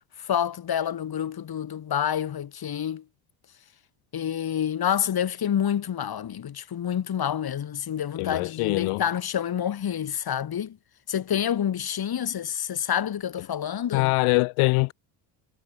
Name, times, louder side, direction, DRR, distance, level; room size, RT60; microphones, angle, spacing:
voice 1, 0.2-3.0 4.1-10.8 11.1-14.1, left 9 dB, 45° left, 3.7 m, -28 dB
voice 2, 8.2-9.0 13.9-14.9, left 27 dB, 80° left, 0.8 m, -23 dB
supercardioid pair, 80°, 49 cm